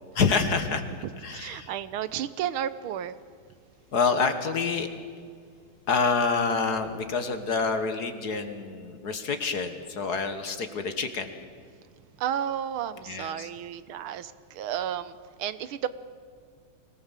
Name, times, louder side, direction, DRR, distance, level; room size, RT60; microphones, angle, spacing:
voice 1, 0.1-0.8 1.2-1.7 3.9-4.9 5.9-11.3 13.1-13.5, left 5 dB, 50° left, 8 dB, 1.7 m, -27 dB
voice 2, 1.0-3.2 12.2-15.9, right 10 dB, 75° right, 14 dB, 1.6 m, -32 dB
24.0 x 18.0 x 7.4 m, 2.1 s
omnidirectional pair, 2.4 m